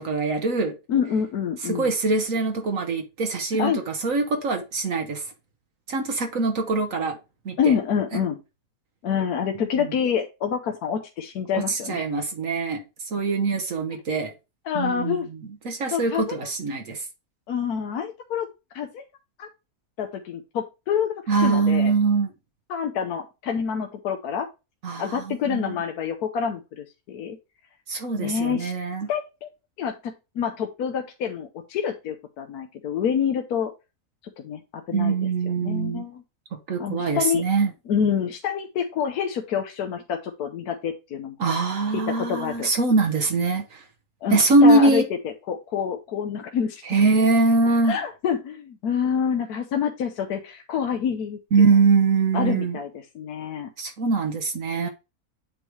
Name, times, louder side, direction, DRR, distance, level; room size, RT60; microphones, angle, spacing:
voice 1, 0.0-0.7 1.7-5.2 5.9-7.2 7.4-7.7 9.8-9.9 11.5-12.8 13.1-14.3 14.7-15.2 15.6-17.0 21.3-22.3 24.8-25.7 27.9-29.1 34.9-36.1 36.5-37.7 41.4-43.8 44.3-45.1 46.9-48.0 51.5-52.8 53.8-54.9, right 3 dB, 60° right, 1.4 m, -22 dB
voice 2, 0.9-1.9 3.6-3.8 7.6-8.4 9.0-12.1 14.7-15.3 15.9-16.4 17.5-18.5 18.7-19.0 19.4-19.5 20.0-21.9 22.7-24.5 25.0-27.4 28.2-28.7 29.1-29.5 29.8-33.7 34.4-35.1 35.4-36.2 36.8-37.5 37.9-41.4 41.9-42.7 44.2-47.1 47.8-51.4 52.3-52.9 53.1-53.7, left 7 dB, 80° left, 1.3 m, -27 dB
8.2 x 3.1 x 4.7 m
omnidirectional pair, 1.6 m